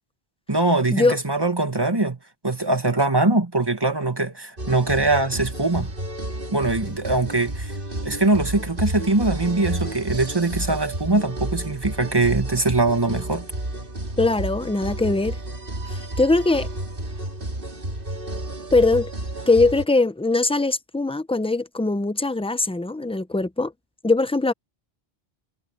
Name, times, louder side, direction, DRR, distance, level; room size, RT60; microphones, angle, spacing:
voice 1, 0.5-2.2 2.4-5.9 6.5-7.7 8.0-13.5, right 2 dB, 20° right, 1.7 m, -22 dB
sound 1, 4.6-19.8, right 1 dB, 50° right, 3.0 m, -31 dB
voice 2, 14.2-15.4 15.8-16.7 18.7-19.1 19.5-23.7 24.0-24.5, left 3 dB, 5° left, 0.5 m, -21 dB
omnidirectional pair, 1.1 m